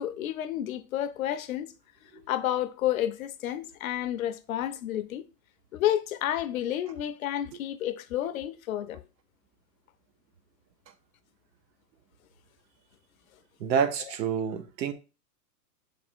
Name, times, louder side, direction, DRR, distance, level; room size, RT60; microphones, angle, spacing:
voice 1, 0.0-1.7 2.1-5.2 5.7-9.0, left 12 dB, 60° left, 0.5 m, -30 dB
voice 2, 13.6-14.9, right 7 dB, 80° right, 0.9 m, -27 dB
3.4 x 3.2 x 4.3 m
hypercardioid pair, 150°, 50 cm